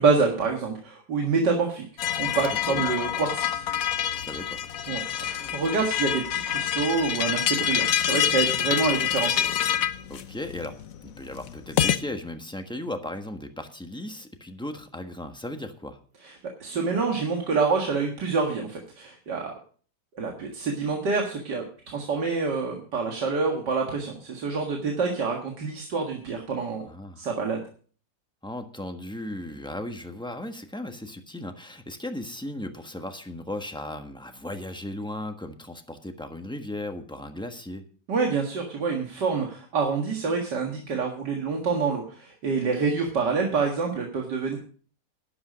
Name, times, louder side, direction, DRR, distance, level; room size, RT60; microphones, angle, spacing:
voice 1, 0.0-1.8 2.2-3.6 4.9-9.4 16.2-16.3 16.6-19.5 20.2-26.8 27.2-27.6 38.1-44.6, right 4 dB, 80° right, 1 dB, 2.4 m, -27 dB
sound 1, 2.0-12.0, left 10 dB, 60° left, 1.2 m, -27 dB
voice 2, 4.1-4.6 10.1-10.8 11.0-16.0 26.8-27.3 28.4-37.8, left 1 dB, 5° left, 5 dB, 1.1 m, -36 dB
12.0 x 11.0 x 5.1 m, 0.43 s
omnidirectional pair, 1.8 m